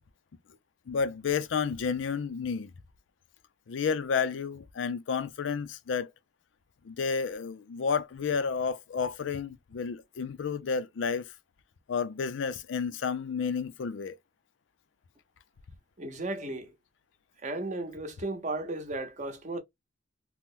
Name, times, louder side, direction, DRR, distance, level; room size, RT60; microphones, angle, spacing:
voice 1, 0.9-2.7 3.7-6.1 6.8-11.3 11.9-14.1, left 5 dB, 80° left, 0.4 m, -31 dB
voice 2, 16.0-16.7 17.4-19.6, right 2 dB, 40° right, 0.7 m, -35 dB
2.9 x 2.1 x 3.6 m
head